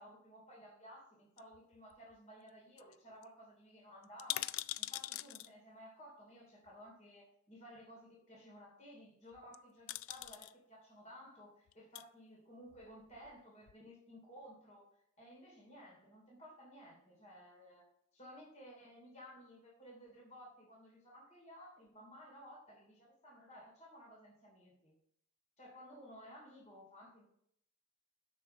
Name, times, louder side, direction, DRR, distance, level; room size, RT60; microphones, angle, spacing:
voice 1, 0.0-14.9 15.2-17.8 18.1-24.9 25.6-27.2, equal, 35° left, -2 dB, 2.9 m, -56 dB
sound 1, 1.4-2.2 2.5-2.6 2.8-2.9 3.2-3.3 4.0-5.5 6.7-6.8 9.3-9.6 9.9-10.5 11.7-12.1 12.7-13.4 13.7-13.8, left 15 dB, 75° left, 0.3 m, -42 dB
7.7 x 6.1 x 5.6 m, 0.70 s
head